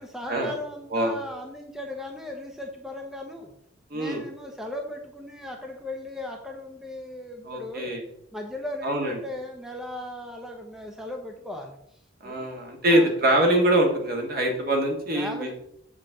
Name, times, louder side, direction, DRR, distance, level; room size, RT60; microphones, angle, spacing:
voice 1, 0.0-3.5 3.9-8.0 8.3-11.8 12.2-12.5 12.9-13.1 15.1-15.5, left 1 dB, ahead, 2 dB, 0.7 m, -37 dB
voice 2, 3.9-4.2 7.5-8.0 8.8-9.2 12.2-15.5, right 1 dB, 50° right, 2 dB, 1.8 m, -24 dB
7.3 x 6.9 x 3.7 m, 0.75 s
head